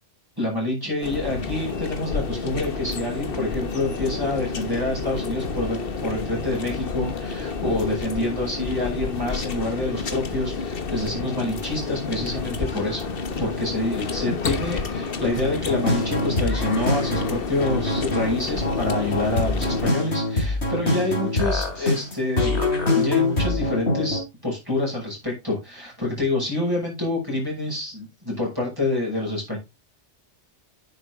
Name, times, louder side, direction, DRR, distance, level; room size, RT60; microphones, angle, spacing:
voice 1, 0.4-13.0 13.4-22.6 22.9-29.6, left 2 dB, 20° right, -5 dB, 6.2 m, -27 dB
sound 1, 1.0-19.9, left 4 dB, 55° left, 1.4 m, -30 dB
sound 2, 15.7-24.2, left 2 dB, 70° left, 3.4 m, -24 dB
10.0 x 8.1 x 3.7 m, 0.24 s
omnidirectional pair, 1.2 m